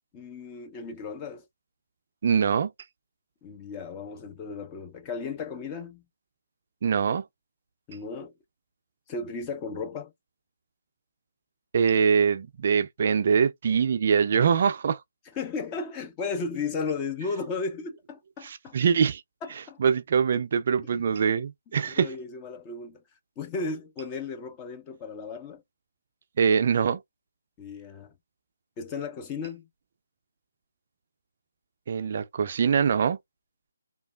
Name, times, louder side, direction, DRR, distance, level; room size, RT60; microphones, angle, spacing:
voice 1, 0.1-1.4 3.4-6.0 7.9-8.3 9.1-10.1 15.4-18.8 19.4-19.8 20.8-20.9 21.9-23.0 23.4-25.6 27.6-28.1 28.8-29.7, left 4 dB, 20° left, 0.5 m, -35 dB
voice 2, 2.2-2.7 6.8-7.2 11.7-15.0 18.4-19.2 19.8-22.1 26.4-27.0 31.9-33.2, right 6 dB, 45° right, 0.3 m, -23 dB
3.1 x 2.2 x 2.3 m
figure-of-eight pair, 150°, 0 cm